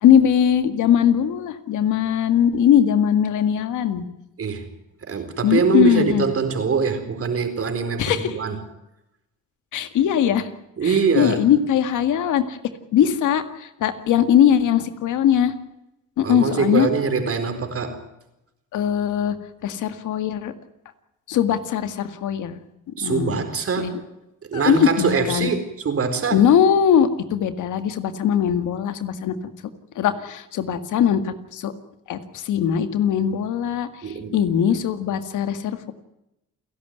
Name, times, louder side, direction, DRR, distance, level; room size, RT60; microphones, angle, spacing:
voice 1, 0.0-4.0 5.4-6.2 8.0-8.4 9.7-10.5 10.8-12.6 12.9-15.5 16.2-16.9 18.7-19.4 19.6-20.5 21.3-22.6 23.0-23.3 23.8-24.0 24.5-25.5 26.3-29.4 30.0-31.7 32.1-35.9, left 9 dB, 80° left, 10 dB, 2.0 m, -20 dB
voice 2, 4.4-4.7 5.0-8.6 10.8-11.4 16.2-18.0 23.0-24.0 24.5-26.4 34.0-34.4, right 5 dB, 50° right, 8 dB, 4.3 m, -23 dB
29.0 x 11.5 x 9.3 m, 0.89 s
cardioid pair, 90°, 30 cm